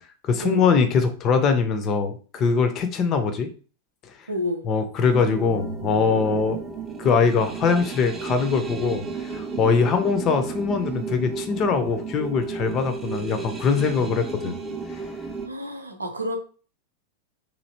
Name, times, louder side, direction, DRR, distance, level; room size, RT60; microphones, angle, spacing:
voice 1, 0.2-3.5 4.7-6.6 7.0-14.5 14.9-15.0, left 5 dB, 30° left, 8 dB, 0.5 m, -22 dB
voice 2, 4.3-4.7 15.4-16.4, equal, 80° right, 5 dB, 0.5 m, -29 dB
sound 1, 5.0-15.5, right 5 dB, 15° right, 0.5 m, -33 dB
3.1 x 2.6 x 2.8 m, 0.38 s
figure-of-eight pair, 90°, 0 cm